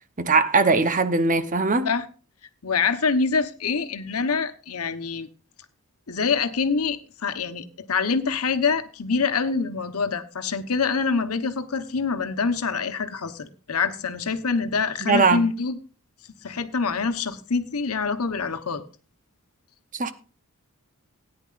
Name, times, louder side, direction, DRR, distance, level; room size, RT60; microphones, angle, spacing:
voice 1, 0.2-1.9 15.0-15.5 19.9-20.1, right 4 dB, 35° right, 0.8 m, -20 dB
voice 2, 2.6-5.3 6.1-15.8 16.4-18.8, left 5 dB, 80° left, 1.1 m, -25 dB
17.5 x 9.8 x 2.5 m
head